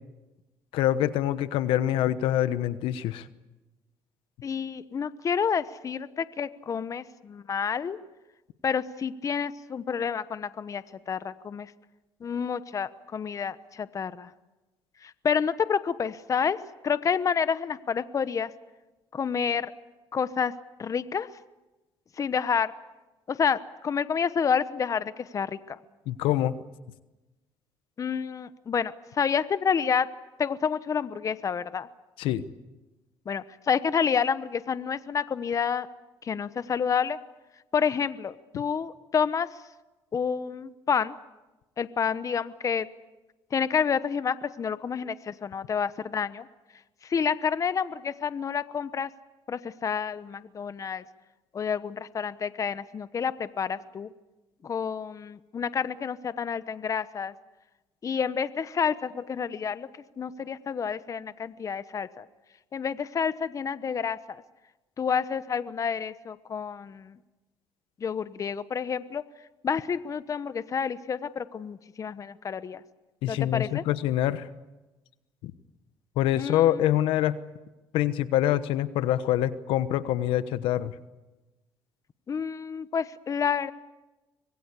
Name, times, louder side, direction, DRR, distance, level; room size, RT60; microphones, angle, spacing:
voice 1, 0.7-3.3 26.1-26.5 32.2-32.4 73.2-74.5 75.4-75.5 76.2-77.4 77.9-80.9, left 12 dB, 85° left, 14 dB, 1.1 m, -25 dB
voice 2, 4.4-8.0 8.6-11.7 12.2-14.3 15.0-16.6 16.8-18.5 19.1-19.7 20.1-20.5 20.8-21.3 22.2-22.7 23.3-25.8 28.0-30.1 30.4-31.9 33.3-35.9 36.2-37.2 37.7-39.6 40.1-41.2 41.8-42.9 43.5-46.5 47.0-49.1 49.5-51.0 51.5-54.1 54.6-57.3 58.0-59.9 60.2-62.2 62.7-64.4 65.0-67.2 68.0-69.2 69.6-72.8 73.3-73.8 76.4-76.8 82.3-83.7, left 6 dB, 40° left, 14 dB, 1.1 m, -29 dB
25.0 x 21.0 x 8.4 m, 1.1 s
cardioid pair, 100°, 9 cm